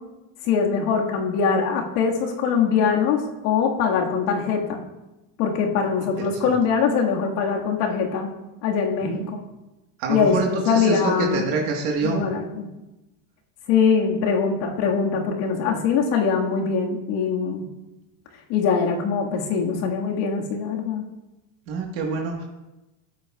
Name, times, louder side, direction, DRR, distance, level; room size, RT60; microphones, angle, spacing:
voice 1, 0.4-4.8 5.4-8.3 8.6-9.4 10.1-11.5 12.0-12.7 13.7-17.7 18.5-21.0, left 6 dB, 65° left, 0 dB, 1.8 m, -22 dB
voice 2, 10.0-12.2 21.7-22.4, right 4 dB, 65° right, 0 dB, 1.5 m, -26 dB
13.5 x 8.8 x 2.3 m, 1.0 s
cardioid pair, 150°, 45 cm